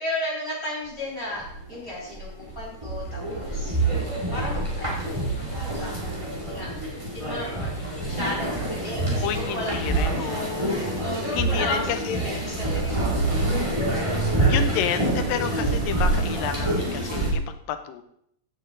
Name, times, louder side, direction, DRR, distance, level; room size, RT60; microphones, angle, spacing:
voice 1, 0.0-3.8 4.3-4.9 5.2-6.7 7.1-7.7 8.0-9.7 10.2-13.1, left 1 dB, 15° left, -6 dB, 5.5 m, -34 dB
sound 1, 1.0-1.1 1.4-17.3, right 2 dB, 10° right, 1.9 m, -26 dB
sound 2, 3.7-8.8, left 2 dB, 60° left, 4.4 m, -44 dB
voice 2, 9.2-10.8 11.3-12.2 14.5-18.0, left 10 dB, 75° left, 9 dB, 2.2 m, -30 dB
14.5 x 7.7 x 3.9 m, 0.71 s
omnidirectional pair, 4.5 m